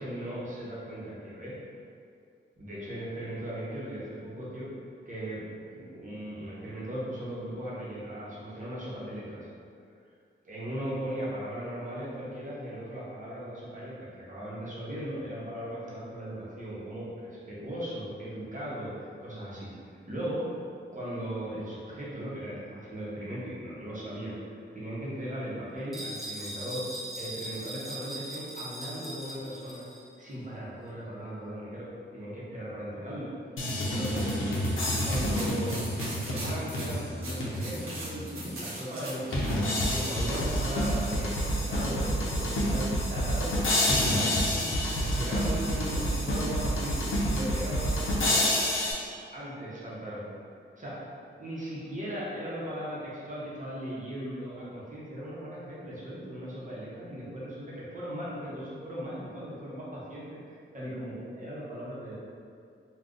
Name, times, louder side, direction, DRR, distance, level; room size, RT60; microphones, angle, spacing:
voice 1, 0.0-1.6 2.6-4.7 5.1-5.4 5.7-9.5 10.4-20.4 20.9-24.4 24.7-26.8 27.2-29.8 30.2-33.3 33.8-34.3 35.0-35.8 36.2-39.4 39.9-43.5 44.0-48.4 49.3-50.3 50.8-51.0 51.3-62.1, equal, 40° right, -7 dB, 0.9 m, -38 dB
sound 1, 25.9-30.1, right 1 dB, ahead, 0.6 m, -40 dB
sound 2, 33.6-38.0 38.4-38.5 39.3-48.9, equal, 75° left, 0.6 m, -28 dB
sound 3, 35.1-41.3, right 1 dB, 85° right, 0.8 m, -40 dB
2.4 x 2.3 x 3.7 m, 2.3 s
wide cardioid pair, 100°, 21 cm